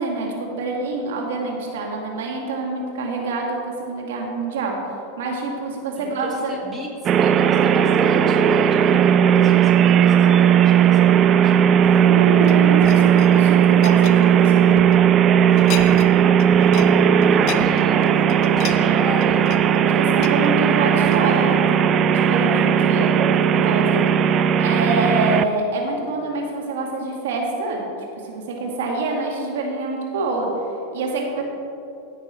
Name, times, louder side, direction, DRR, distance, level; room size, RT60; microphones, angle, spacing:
voice 1, 0.0-4.8 5.2-6.5 12.0-14.8 19.8-24.1 24.6-27.8 28.2-30.5 30.9-31.4, right 3 dB, 75° right, 0 dB, 1.8 m, -26 dB
voice 2, 6.0-11.6 17.1-18.1 18.6-19.4, left 1 dB, 10° right, -2 dB, 1.9 m, -34 dB
sound 1, 7.1-25.4, right 8 dB, 35° right, 0.4 m, -16 dB
sound 2, 11.7-15.0 15.4-16.1 16.4-16.9 17.2-21.5 22.0-22.2, left 9 dB, 50° left, 0.7 m, -35 dB
15.0 x 6.0 x 4.2 m, 2.7 s
hypercardioid pair, 110°, 0 cm